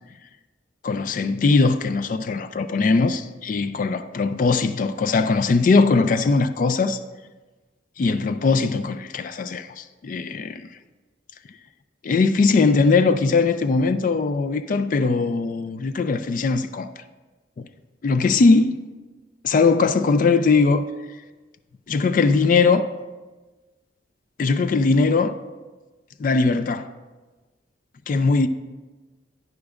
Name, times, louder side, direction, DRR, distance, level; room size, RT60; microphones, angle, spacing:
voice 1, 0.8-7.0 8.0-10.7 12.0-16.9 18.0-18.8 19.4-20.9 21.9-22.9 24.4-25.4 26.2-26.9 28.1-28.5, left 4 dB, 45° left, 0.3 m, -20 dB
11.5 x 9.4 x 2.4 m
head